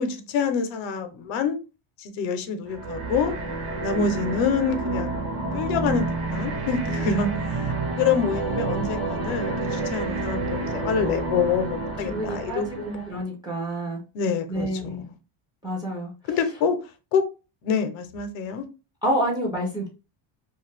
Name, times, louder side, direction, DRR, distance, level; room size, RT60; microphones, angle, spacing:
voice 1, 0.0-1.6 2.0-3.3 3.8-5.2 5.5-6.1 6.3-13.2 14.1-14.9 16.3-16.8 17.1-17.2 17.6-18.6, left 6 dB, 70° left, 0.7 m, -26 dB
sound 1, 2.7-13.2, right 3 dB, 50° right, 0.8 m, -29 dB
voice 2, 6.9-7.5 12.0-12.8 13.1-14.0 14.5-15.0 15.6-16.4 19.0-19.9, right 1 dB, 10° right, 0.3 m, -29 dB
2.5 x 2.3 x 3.2 m
cardioid pair, 165°, 49 cm